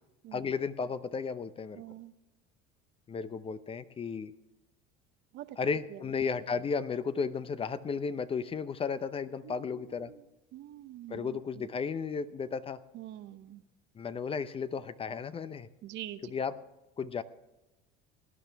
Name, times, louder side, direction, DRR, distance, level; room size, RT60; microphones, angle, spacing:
voice 1, 0.3-1.8 3.1-4.3 5.6-10.1 11.1-12.8 14.0-15.7 16.3-16.5 17.0-17.2, left 5 dB, 25° left, 13 dB, 0.6 m, -34 dB
voice 2, 1.7-2.1 5.3-5.6 5.9-6.0 9.4-10.3 10.5-11.7 12.9-13.6 15.8-16.3, right 13 dB, 60° right, 12 dB, 0.8 m, -45 dB
18.5 x 10.5 x 3.4 m, 0.97 s
supercardioid pair, 95°, 21 cm